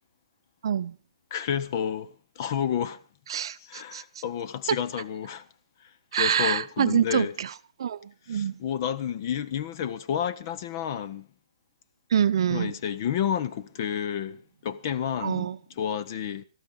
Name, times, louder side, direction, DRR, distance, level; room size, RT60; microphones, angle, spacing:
voice 1, 0.6-1.0 3.3-4.0 4.7-4.8 6.1-7.5 7.8-8.0 8.3-8.6 12.1-12.7 15.2-15.6, right 8 dB, 55° right, 0.8 m, -25 dB
voice 2, 1.3-3.0 3.6-5.5 6.1-7.3 8.3-11.3 12.5-16.4, left 9 dB, 35° left, 0.8 m, -30 dB
21.0 x 13.5 x 3.9 m
hypercardioid pair, 170°, 3 cm